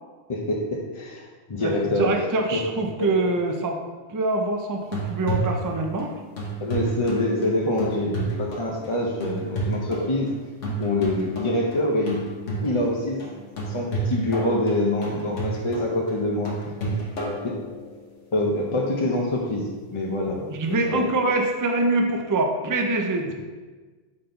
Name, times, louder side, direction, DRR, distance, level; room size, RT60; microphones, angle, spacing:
voice 1, 0.3-2.1 2.5-2.6 6.6-10.3 10.8-12.2 12.6-13.2 13.7-16.5 16.8-16.9 17.4-17.6 18.3-20.5 20.9-21.1, left 1 dB, 35° left, -2 dB, 0.5 m, -25 dB
voice 2, 1.6-3.8 4.1-6.1 10.7-10.8 20.5-23.3, right 2 dB, 35° right, 3 dB, 0.3 m, -24 dB
sound 1, 4.8-18.2 21.7-21.8, right 2 dB, 85° left, 1.5 m, -32 dB
4.4 x 4.1 x 5.2 m, 1.4 s
omnidirectional pair, 1.2 m